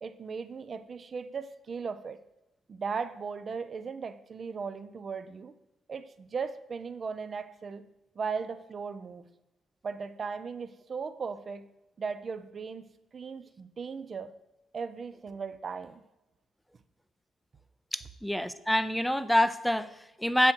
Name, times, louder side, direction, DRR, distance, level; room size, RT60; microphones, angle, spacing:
voice 1, 0.0-2.2 2.7-5.6 5.9-7.9 8.2-9.3 9.8-11.7 12.0-14.3 14.7-16.0, right 5 dB, 45° right, 13 dB, 0.6 m, -37 dB
voice 2, 17.9-20.5, left 1 dB, ahead, 13 dB, 0.5 m, -27 dB
7.8 x 7.0 x 4.6 m, 0.98 s
cardioid pair, 90°, 0 cm